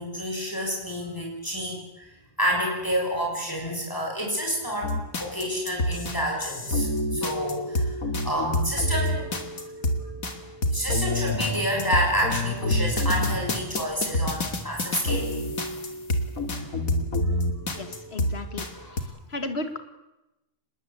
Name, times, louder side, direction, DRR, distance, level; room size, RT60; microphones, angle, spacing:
voice 1, 0.0-9.3 9.5-9.6 10.7-15.3 17.6-17.7 18.6-19.1, equal, 10° left, -1 dB, 6.7 m, -29 dB
sound 1, 4.8-18.7 19.0-19.1, left 1 dB, 60° left, 3.0 m, -28 dB
voice 2, 17.8-18.7 19.3-19.8, left 2 dB, 40° left, 9 dB, 2.4 m, -33 dB
26.5 x 21.0 x 8.5 m, 0.96 s
omnidirectional pair, 1.7 m